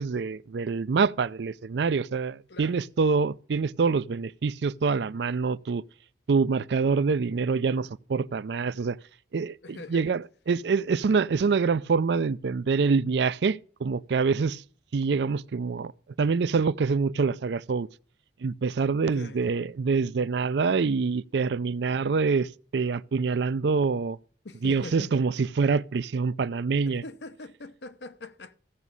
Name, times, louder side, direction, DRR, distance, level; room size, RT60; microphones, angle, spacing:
voice 1, 0.0-5.8 6.3-9.0 9.3-14.6 14.9-15.9 16.2-17.9 18.4-24.2 24.6-27.0, right 5 dB, 70° right, 0.4 m, -26 dB
voice 2, 2.5-2.8 9.6-10.2 19.0-19.4 24.4-25.1 26.9-28.5, left 2 dB, 70° left, 0.9 m, -42 dB
15.5 x 6.1 x 5.4 m
head